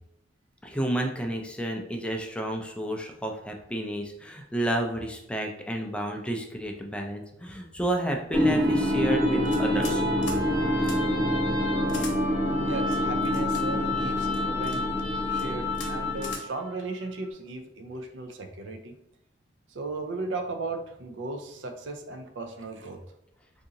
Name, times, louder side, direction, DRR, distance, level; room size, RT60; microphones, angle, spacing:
voice 1, 0.6-10.0, right 1 dB, 5° left, 2 dB, 0.4 m, -31 dB
sound 1, 8.3-16.5, left 1 dB, 35° right, 1.0 m, -26 dB
sound 2, 9.5-10.0 10.2-10.4 10.8-11.0 11.9-12.1 12.9-13.6 14.3-14.8 15.3-15.5 15.7-15.9 16.2-16.4, left 4 dB, 75° left, 0.8 m, -40 dB
voice 2, 12.6-14.8 15.3-19.0 19.7-23.0, right 2 dB, 80° right, 6 dB, 0.5 m, -36 dB
2.7 x 2.6 x 3.7 m, 0.80 s
head